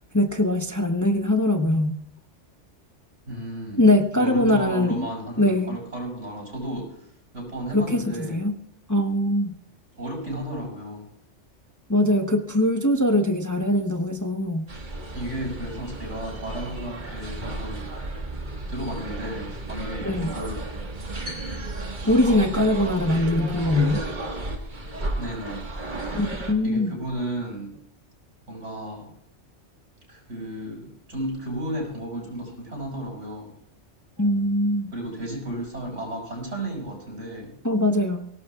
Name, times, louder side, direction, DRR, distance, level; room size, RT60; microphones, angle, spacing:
voice 1, 0.0-2.0 3.8-5.1 5.4-5.8 7.7-8.5 8.9-9.6 11.9-14.7 20.0-20.4 22.0-24.0 26.1-26.9 34.2-34.9 37.6-38.3, left 1 dB, 15° left, 4 dB, 0.8 m, -22 dB
voice 2, 3.3-3.8 4.1-8.4 10.0-11.1 15.1-17.9 18.4-20.6 25.1-25.6 26.6-27.7 28.5-29.1 30.1-33.5 34.9-37.5, right 1 dB, 85° right, -1 dB, 7.0 m, -33 dB
sound 1, 14.7-26.5, right 2 dB, 40° right, 1.7 m, -33 dB
23.5 x 18.0 x 2.4 m, 0.70 s
omnidirectional pair, 1.2 m